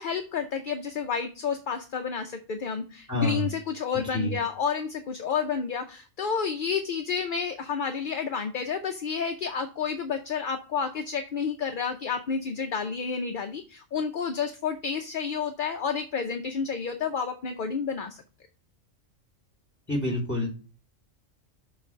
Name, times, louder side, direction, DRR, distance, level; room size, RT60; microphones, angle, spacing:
voice 1, 0.0-18.2, left 6 dB, 50° left, 5 dB, 0.7 m, -30 dB
voice 2, 3.1-3.5 3.9-4.4 19.9-20.5, left 2 dB, 15° left, 0 dB, 2.9 m, -28 dB
7.0 x 3.2 x 6.0 m, 0.35 s
omnidirectional pair, 1.3 m